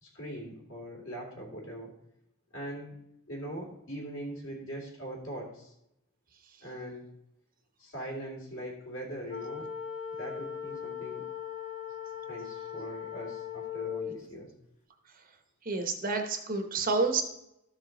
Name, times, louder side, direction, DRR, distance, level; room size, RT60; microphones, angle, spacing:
voice 1, 0.0-1.9 2.5-3.0 3.3-5.7 6.6-7.0 7.8-9.7 10.1-11.3 12.3-14.5, right 1 dB, 60° left, -1 dB, 2.5 m, -41 dB
sound 1, 9.3-14.2, left 8 dB, 35° left, 1.1 m, -39 dB
voice 2, 15.7-17.2, right 3 dB, 40° right, 5 dB, 0.9 m, -29 dB
13.5 x 4.8 x 3.9 m, 0.82 s
head